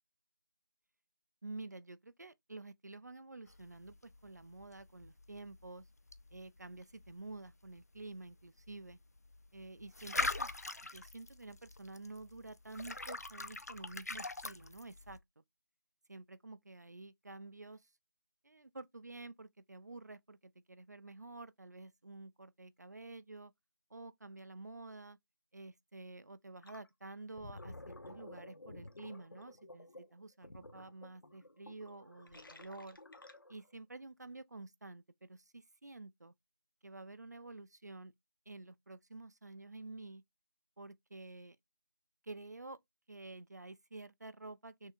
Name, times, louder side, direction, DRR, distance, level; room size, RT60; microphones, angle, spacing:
voice 1, 1.4-5.9 6.3-9.0 9.5-10.5 10.8-15.4 16.1-17.9 18.4-23.5 23.9-25.2 25.5-33.0 33.5-36.3 36.8-38.1 38.5-40.2 40.8-41.6 42.2-42.8 43.1-44.9, right 2 dB, 50° right, 0.4 m, -50 dB
sound 1, 3.5-15.2, left 2 dB, 45° left, 0.3 m, -44 dB
Gurgling, 26.6-26.9 27.2-33.7, left 2 dB, 75° left, 1.0 m, -53 dB
6.3 x 2.8 x 2.4 m
figure-of-eight pair, 175°, 12 cm